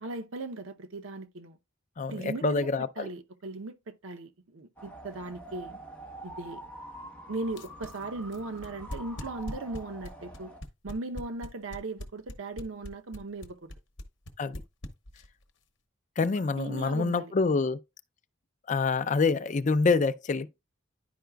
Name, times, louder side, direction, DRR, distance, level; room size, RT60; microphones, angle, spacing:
voice 1, 0.0-1.6 2.1-2.7 3.0-5.7 6.2-6.6 7.3-10.5 10.8-13.7 16.3-17.3, right 2 dB, 75° right, 0.7 m, -38 dB
voice 2, 2.0-3.1 14.4-14.6 16.2-17.8 18.7-20.5, left 4 dB, 35° left, 0.4 m, -26 dB
sound 1, 4.8-10.6, right 1 dB, 10° left, 1.1 m, -46 dB
sound 2, 7.5-15.4, left 1 dB, 60° left, 0.9 m, -41 dB
10.5 x 4.7 x 2.3 m
head